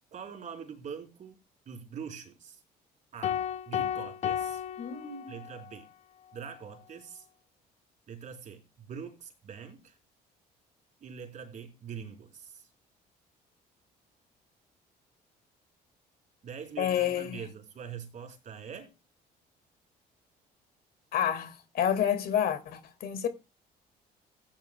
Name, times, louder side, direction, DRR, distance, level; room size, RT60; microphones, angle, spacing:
voice 1, 0.1-1.4 1.7-2.6 3.1-4.6 5.3-5.9 6.3-7.3 8.1-10.0 11.0-12.7 16.4-18.9, right 7 dB, 45° right, 4.1 m, -43 dB
sound 1, 3.2-5.7, left 9 dB, 40° left, 0.4 m, -33 dB
voice 2, 4.8-5.3 16.8-17.4 21.1-23.3, left 9 dB, 65° left, 2.0 m, -29 dB
16.5 x 10.0 x 2.3 m
cardioid pair, 110°, 17 cm